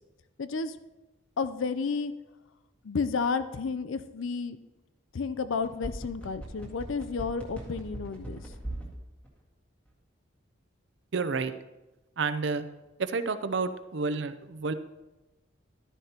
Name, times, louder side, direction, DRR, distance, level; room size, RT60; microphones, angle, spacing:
voice 1, 0.4-0.8 1.4-2.1 2.8-4.6 5.1-8.4, left 5 dB, 80° left, 13 dB, 0.5 m, -31 dB
sound 1, 5.5-8.9 9.2-9.3, right 1 dB, 5° left, 1.7 m, -38 dB
voice 2, 11.1-11.5 12.2-12.6 13.0-14.7, right 4 dB, 65° right, 10 dB, 0.5 m, -30 dB
12.0 x 10.0 x 2.9 m, 1.1 s
head